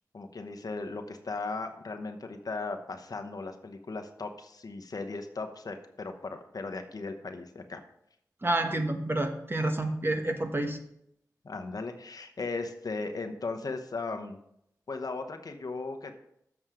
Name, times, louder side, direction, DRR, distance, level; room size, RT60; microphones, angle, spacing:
voice 1, 0.1-7.8 11.4-14.4 14.9-16.1, left 3 dB, 60° left, 5 dB, 0.9 m, -37 dB
voice 2, 8.4-10.8, right 1 dB, 35° right, 5 dB, 1.2 m, -29 dB
7.7 x 6.1 x 4.9 m, 0.74 s
cardioid pair, 50°, 7 cm